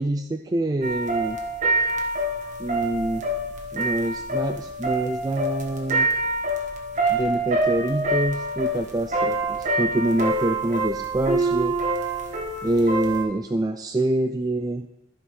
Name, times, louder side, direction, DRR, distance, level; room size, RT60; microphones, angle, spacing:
voice 1, 0.0-1.4 2.6-3.2 3.7-6.1 7.1-11.8 12.6-14.9, right 2 dB, 20° right, 5 dB, 0.3 m, -25 dB
sound 1, 0.8-13.2, right 2 dB, 40° right, 1.6 m, -26 dB
14.0 x 4.9 x 5.5 m, 0.86 s
head